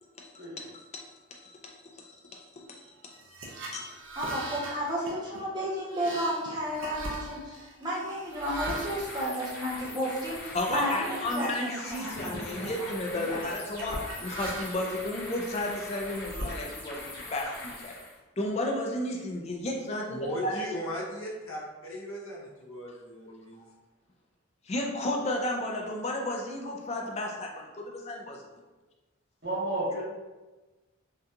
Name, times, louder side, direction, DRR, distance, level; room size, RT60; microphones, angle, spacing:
voice 1, 0.2-1.6 2.0-3.2 3.7-3.9 10.5-17.9 18.4-20.6 24.7-28.4, left 1 dB, 30° left, 0 dB, 0.4 m, -33 dB
sound 1, 3.1-10.2 10.7-10.9 11.2-11.9 12.1-12.8 13.4-14.9 15.5-17.1, right 2 dB, 65° right, 0.6 m, -40 dB
voice 2, 4.2-13.3, equal, 20° right, -5 dB, 0.7 m, -33 dB
sound 2, 8.3-18.2, left 2 dB, 45° left, 0.8 m, -42 dB
voice 3, 20.1-23.6, equal, 75° left, -4 dB, 0.8 m, -37 dB
voice 4, 29.4-30.0, right 1 dB, 50° right, -6 dB, 1.1 m, -31 dB
3.8 x 2.3 x 2.7 m, 1.2 s
head